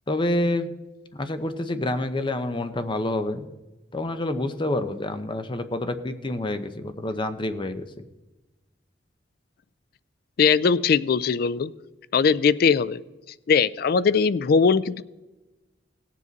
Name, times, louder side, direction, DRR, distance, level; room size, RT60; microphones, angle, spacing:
voice 1, 0.1-0.7 1.1-3.5 3.9-7.8, left 1 dB, 25° left, 9 dB, 0.7 m, -27 dB
voice 2, 10.4-11.7 12.1-13.0 13.5-15.0, left 5 dB, 55° left, 17 dB, 0.4 m, -20 dB
18.0 x 7.5 x 4.0 m, 1.1 s
head